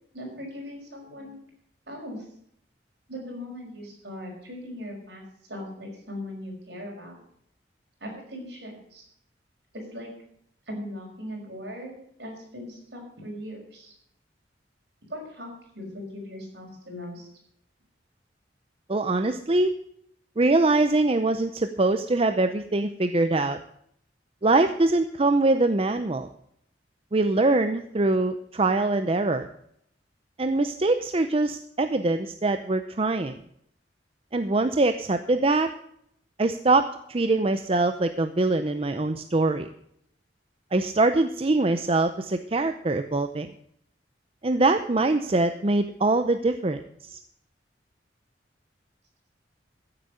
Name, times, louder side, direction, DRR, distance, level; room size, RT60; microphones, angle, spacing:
voice 1, 0.1-1.4 1.9-2.3 3.1-5.2 5.5-7.1 8.0-9.0 9.7-10.1 10.7-13.9 15.1-17.3, left 1 dB, 65° right, 0 dB, 5.7 m, -39 dB
voice 2, 18.9-19.7 20.4-23.6 24.4-26.3 27.1-29.5 30.4-33.4 34.3-35.7 36.4-39.7 40.7-43.5 44.4-46.8 47.1-47.2, right 2 dB, 30° right, 9 dB, 0.6 m, -23 dB
15.0 x 8.1 x 6.4 m, 0.69 s
head